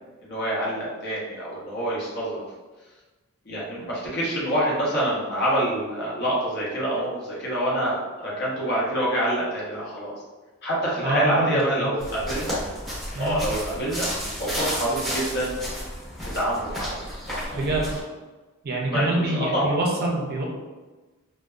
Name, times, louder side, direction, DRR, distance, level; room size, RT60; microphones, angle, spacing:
voice 1, 0.2-2.4 3.5-10.1 10.6-12.6 13.2-14.1 14.4-15.6 16.2-17.0 17.3-17.7 18.8-19.8, right 1 dB, 50° left, -6 dB, 0.8 m, -26 dB
voice 2, 11.0-11.5 11.8-11.9 13.1-13.4 17.5-17.9 18.6-20.4, right 2 dB, 45° right, -2 dB, 0.5 m, -25 dB
sound 1, 12.0-18.0, equal, ahead, 0.8 m, -32 dB
2.6 x 2.1 x 2.2 m, 1.2 s
head